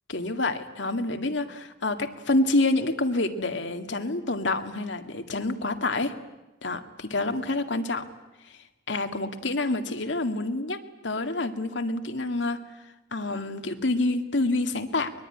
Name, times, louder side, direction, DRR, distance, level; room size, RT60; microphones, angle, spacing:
voice 1, 0.1-6.1 6.6-8.1 8.9-12.6 13.1-15.1, left 2 dB, 75° left, 7 dB, 2.0 m, -27 dB
23.0 x 21.5 x 9.9 m, 0.99 s
head